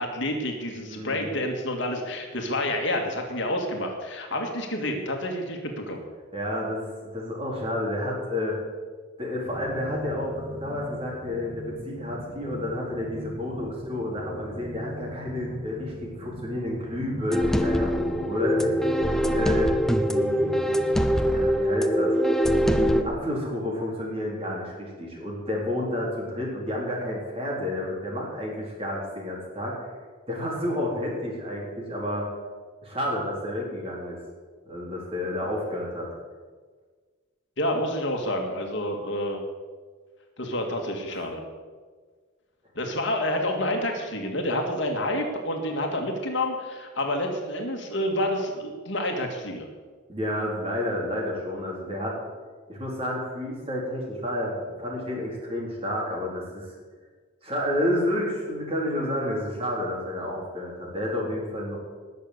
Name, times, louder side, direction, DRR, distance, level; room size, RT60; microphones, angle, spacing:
voice 1, 0.0-6.0 37.6-39.4 40.4-41.4 42.8-49.7, left 1 dB, 55° left, 3 dB, 2.1 m, -28 dB
voice 2, 0.9-1.3 6.3-8.6 9.2-19.0 19.3-19.7 20.1-20.6 21.3-22.1 22.7-29.9 30.3-32.3 32.8-34.2 34.7-36.1 41.1-41.2 50.1-52.2 52.7-56.7 57.4-61.8, left 1 dB, 25° right, -3 dB, 4.2 m, -30 dB
sound 1, 9.4-21.5, left 1 dB, 45° right, 3.7 m, -40 dB
sound 2, 17.3-23.0, equal, ahead, 0.6 m, -23 dB
19.5 x 6.7 x 8.3 m, 1.5 s
head